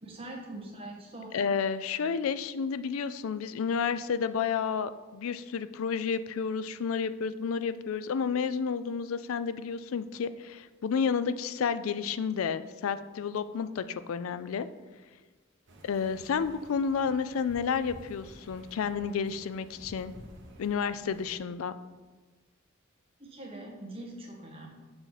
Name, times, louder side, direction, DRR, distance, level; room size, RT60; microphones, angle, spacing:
voice 1, 0.0-1.4 23.2-24.7, right 1 dB, 30° right, -2 dB, 1.5 m, -43 dB
voice 2, 1.3-14.7 15.8-20.1 20.6-21.7, left 6 dB, 80° left, 13 dB, 0.4 m, -31 dB
sound 1, 15.7-21.4, right 1 dB, 60° right, 1.1 m, -51 dB
6.7 x 5.9 x 4.0 m, 1.3 s
head